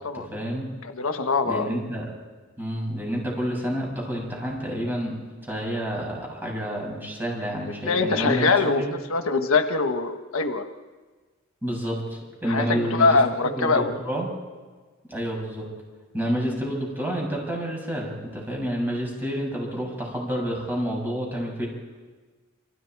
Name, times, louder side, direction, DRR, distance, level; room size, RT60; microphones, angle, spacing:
voice 1, 0.1-0.6 1.4-2.1 2.6-5.2 5.4-8.9 11.6-14.3 15.1-15.7 16.1-21.7, equal, 10° right, -2 dB, 7.3 m, -29 dB
voice 2, 0.8-1.7 7.9-10.7 12.5-13.9, left 3 dB, 85° left, 8 dB, 1.2 m, -23 dB
28.0 x 28.0 x 4.7 m, 1.4 s
head